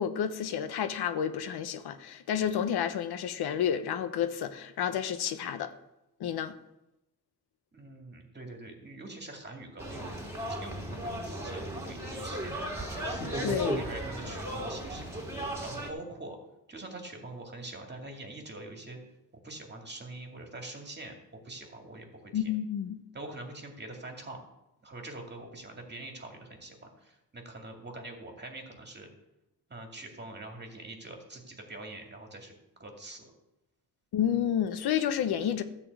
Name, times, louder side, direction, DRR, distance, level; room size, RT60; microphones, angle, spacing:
voice 1, 0.0-5.7 6.2-6.5 13.2-13.8 22.3-23.0 34.1-35.6, left 9 dB, 80° left, 0.9 m, -30 dB
voice 2, 7.7-10.1 10.5-13.2 13.8-16.4 16.7-19.0 19.4-22.5 23.1-24.4 24.8-26.8 27.0-29.1 29.7-32.5 32.8-33.3, right 2 dB, 25° right, 2.4 m, -44 dB
sound 1, 9.8-15.9, right 1 dB, 5° right, 3.1 m, -35 dB
12.5 x 4.3 x 8.1 m
cardioid pair, 90°, 38 cm